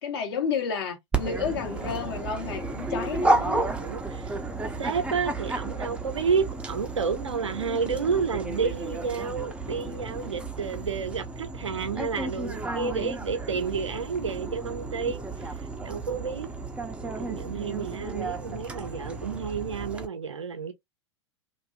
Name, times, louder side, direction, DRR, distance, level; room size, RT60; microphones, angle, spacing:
voice 1, 0.0-3.7, left 6 dB, 55° left, 1.1 m, -31 dB
Dog, 1.1-20.0, right 2 dB, 5° right, 0.5 m, -32 dB
voice 2, 3.8-4.4 4.8-15.2 15.8-16.5 17.0-20.7, right 5 dB, 75° right, 0.6 m, -30 dB
2.6 x 2.5 x 2.3 m
figure-of-eight pair, 90°, 15 cm